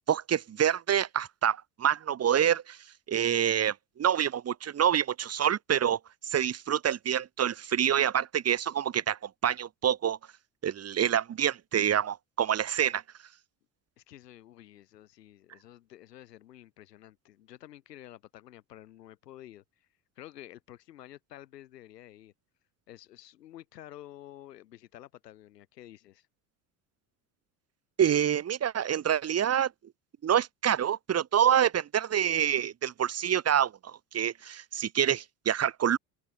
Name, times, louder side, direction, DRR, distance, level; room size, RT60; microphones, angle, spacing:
voice 1, 0.1-2.8 3.1-10.2 10.6-13.0 28.0-29.7 30.2-36.0, right 9 dB, 30° right, 1.1 m, -27 dB
voice 2, 14.0-19.9 20.2-22.3 22.9-26.3, left 13 dB, 85° left, 4.1 m, -50 dB
open air
hypercardioid pair, 70°, 47 cm